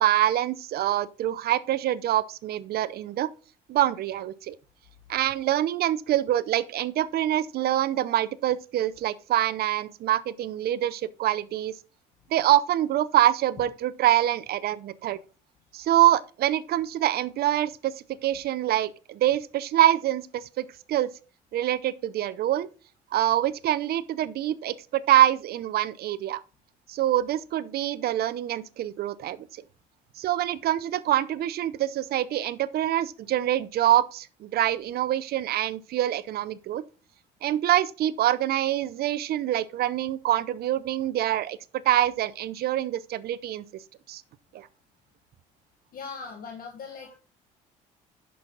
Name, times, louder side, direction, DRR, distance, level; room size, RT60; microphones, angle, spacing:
voice 1, 0.0-3.3 3.7-4.6 5.1-11.7 12.3-15.2 15.7-17.9 18.2-21.1 21.5-22.7 23.1-26.4 26.9-29.4 30.2-36.8 37.4-41.6 41.8-43.6 44.1-44.2 44.5-44.7, right 13 dB, 60° right, 0.7 m, -25 dB
voice 2, 45.9-47.1, left 5 dB, 55° left, 1.8 m, -39 dB
10.5 x 6.3 x 3.9 m
supercardioid pair, 75°, 18 cm